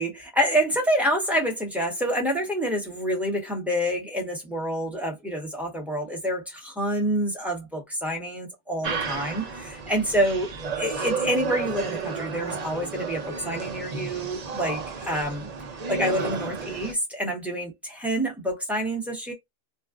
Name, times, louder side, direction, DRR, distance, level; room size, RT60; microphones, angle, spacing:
voice 1, 0.0-15.5 15.9-19.3, equal, ahead, 1.1 m, -27 dB
sound 1, 8.8-16.9, right 5 dB, 45° right, 0.6 m, -32 dB
2.5 x 2.3 x 3.5 m
omnidirectional pair, 1.1 m